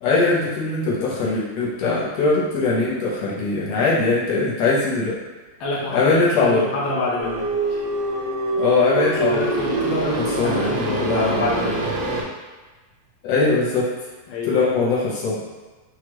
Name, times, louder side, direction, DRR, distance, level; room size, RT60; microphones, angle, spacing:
voice 1, 0.0-5.2 5.9-6.7 8.5-9.4 9.8-11.4 13.2-13.9 14.5-15.4, left 3 dB, 70° left, -6 dB, 1.7 m, -21 dB
voice 2, 5.6-7.8 9.2-11.9 14.3-14.7, left 2 dB, 90° left, -6 dB, 1.1 m, -27 dB
sound 1, 7.2-12.2, right 3 dB, 85° right, 1.3 m, -25 dB
6.2 x 2.4 x 3.0 m, 1.3 s
omnidirectional pair, 3.7 m